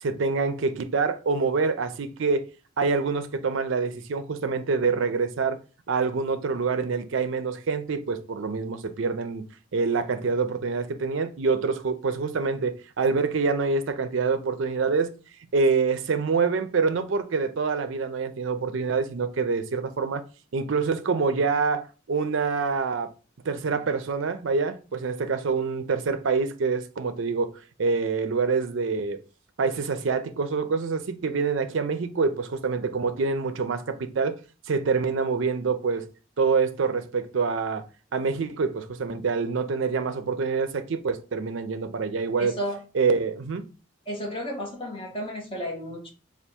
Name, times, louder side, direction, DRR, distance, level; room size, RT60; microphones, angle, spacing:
voice 1, 0.0-2.5 2.8-5.6 5.9-9.4 9.7-15.1 15.5-20.2 20.5-23.1 23.5-29.2 29.6-34.4 34.7-36.1 36.4-37.8 38.1-42.6 42.9-43.7, right 4 dB, 65° right, 0.5 m, -26 dB
voice 2, 42.4-42.8 44.1-46.1, equal, 25° left, 1.2 m, -33 dB
3.4 x 2.4 x 4.3 m
head